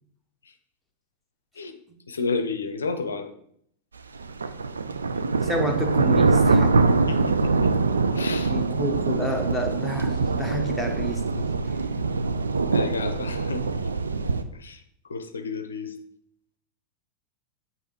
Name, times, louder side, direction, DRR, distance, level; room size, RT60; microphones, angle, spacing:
voice 1, 2.1-3.3 7.1-8.6 12.7-13.7 14.5-14.8 15.1-16.0, left 4 dB, 70° left, 8 dB, 0.6 m, -31 dB
sound 1, 4.1-14.4, right 4 dB, 75° right, 0.4 m, -23 dB
voice 2, 5.4-6.8 8.5-11.5, equal, ahead, 0 dB, 1.1 m, -30 dB
8.6 x 3.1 x 4.6 m, 0.67 s
figure-of-eight pair, 90°, 0 cm